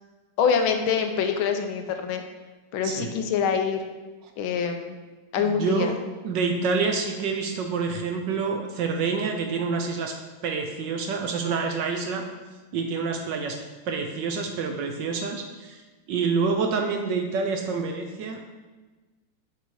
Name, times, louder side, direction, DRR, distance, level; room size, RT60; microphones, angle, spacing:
voice 1, 0.4-2.2 2.7-3.8 4.4-5.0 5.3-5.9, left 6 dB, 75° left, 6 dB, 1.4 m, -25 dB
voice 2, 2.8-3.1 5.4-5.9 6.2-10.2 10.4-12.2 12.7-13.6 13.9-15.8 16.1-18.4, right 5 dB, 70° right, 4 dB, 1.2 m, -27 dB
6.7 x 4.8 x 4.6 m, 1.3 s
omnidirectional pair, 2.3 m